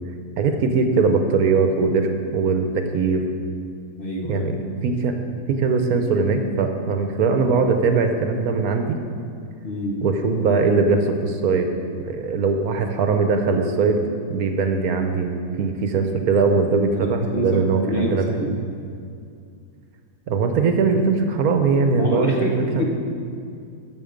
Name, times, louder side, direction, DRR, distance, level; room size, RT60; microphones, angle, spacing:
voice 1, 0.4-3.2 4.2-5.1 5.5-9.0 10.0-11.7 12.0-14.0 14.3-18.5 20.3-22.8, right 4 dB, 65° right, 6 dB, 1.2 m, -21 dB
voice 2, 4.0-4.4 9.6-10.0 16.9-18.5 22.0-22.8, left 1 dB, 35° left, -1 dB, 1.2 m, -27 dB
14.5 x 6.4 x 5.2 m, 2.4 s
omnidirectional pair, 1.8 m